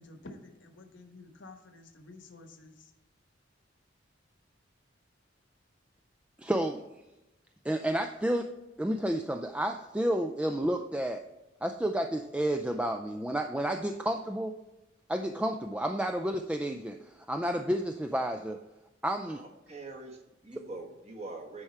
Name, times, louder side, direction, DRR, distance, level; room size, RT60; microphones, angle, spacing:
voice 1, 0.0-2.9, left 2 dB, 70° left, 5 dB, 1.1 m, -50 dB
voice 2, 6.4-6.8 7.6-8.5 8.8-11.2 11.6-14.5 15.1-18.6 19.0-19.4, right 1 dB, 5° right, 5 dB, 0.3 m, -31 dB
voice 3, 19.3-21.6, right 2 dB, 35° right, 2 dB, 1.4 m, -44 dB
9.9 x 4.7 x 4.4 m, 0.98 s
head